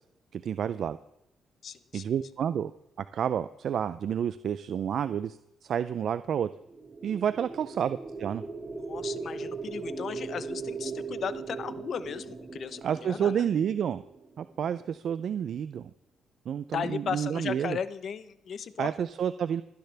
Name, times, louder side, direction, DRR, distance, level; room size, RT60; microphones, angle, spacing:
voice 1, 0.3-1.0 1.9-2.7 3.0-6.5 7.0-8.4 12.8-14.0 14.4-15.9 16.5-17.8 18.8-19.6, right 8 dB, 60° right, 13 dB, 0.5 m, -30 dB
voice 2, 1.6-2.0 8.8-13.4 16.7-18.9, left 7 dB, 55° left, 13 dB, 0.9 m, -36 dB
sound 1, 6.6-14.7, right 4 dB, 25° right, 1.6 m, -39 dB
27.0 x 10.5 x 3.5 m, 0.86 s
cardioid pair, 90°, 0 cm